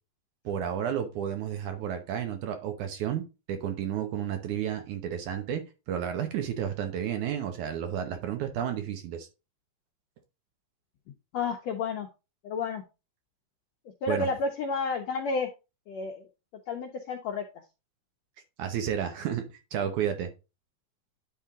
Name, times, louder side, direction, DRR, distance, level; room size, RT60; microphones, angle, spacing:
voice 1, 0.5-5.6 5.9-9.3 14.1-14.3 18.6-19.4 19.7-20.3, right 9 dB, 70° right, 6 dB, 2.2 m, -31 dB
voice 2, 11.3-12.1 12.4-12.8 14.0-15.5 15.9-16.3 16.7-17.4, left 4 dB, 85° left, 3 dB, 1.5 m, -31 dB
10.0 x 3.7 x 3.6 m, 0.28 s
omnidirectional pair, 3.9 m